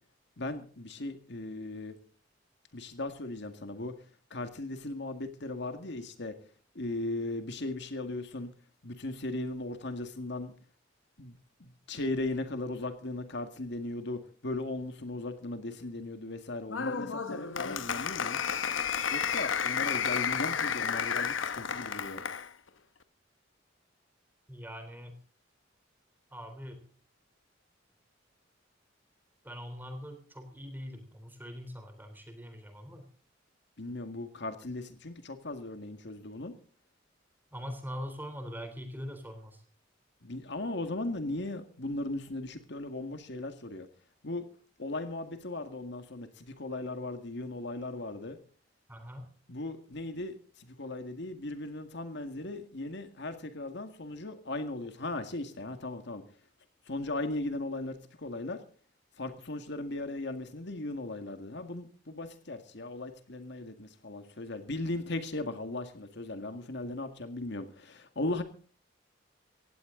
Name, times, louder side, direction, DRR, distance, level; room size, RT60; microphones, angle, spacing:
voice 1, 0.4-2.0 2.7-3.9 4.3-6.3 6.8-8.5 8.8-10.5 11.2-18.4 19.1-22.2 33.8-36.5 40.2-43.9 44.2-44.5 44.8-48.4 49.5-56.2 56.9-58.6 59.2-68.4, left 2 dB, 65° left, 8 dB, 1.9 m, -37 dB
Applause, 16.7-22.5, left 7 dB, 85° left, 1.0 m, -32 dB
voice 2, 24.5-25.2 26.3-26.8 29.4-33.1 37.5-39.6 48.9-49.3, equal, 10° right, 6 dB, 3.5 m, -42 dB
18.0 x 16.0 x 3.8 m, 0.41 s
head